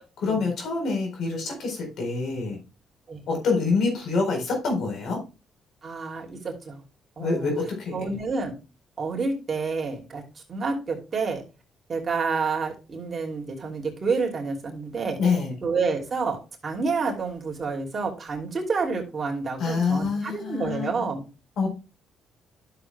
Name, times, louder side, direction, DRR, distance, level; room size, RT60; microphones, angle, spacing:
voice 1, 0.2-2.6 3.3-5.2 7.2-8.2 15.2-15.5 19.6-20.9 21.6-21.7, left 4 dB, 70° left, 3 dB, 4.2 m, -26 dB
voice 2, 5.8-6.8 7.2-7.5 7.9-8.5 9.0-10.2 10.5-11.4 11.9-15.2 15.6-16.4 16.6-21.3, right 4 dB, 35° right, 0 dB, 2.8 m, -29 dB
12.0 x 7.0 x 2.3 m, 0.30 s
cardioid pair, 90°, 0 cm